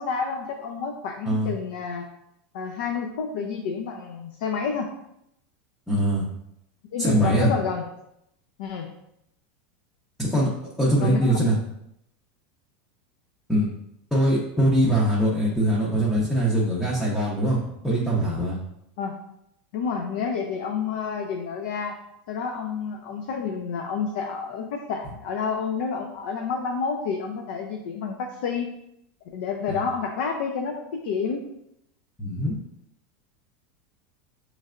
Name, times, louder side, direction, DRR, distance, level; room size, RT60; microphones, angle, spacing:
voice 1, 0.0-2.0 2.5-4.9 6.9-7.8 8.6-8.9 11.0-11.5 19.0-19.2 19.7-22.0 22.3-28.7 29.3-31.4, left 5 dB, 60° left, 2 dB, 0.5 m, -29 dB
voice 2, 5.9-6.2 7.0-7.5 10.2-10.5 10.8-11.6 13.5-13.7 14.1-18.6 29.7-29.8 32.2-32.5, right 1 dB, 5° left, -6 dB, 0.6 m, -22 dB
6.4 x 3.2 x 2.5 m, 0.80 s
supercardioid pair, 175°, 6 cm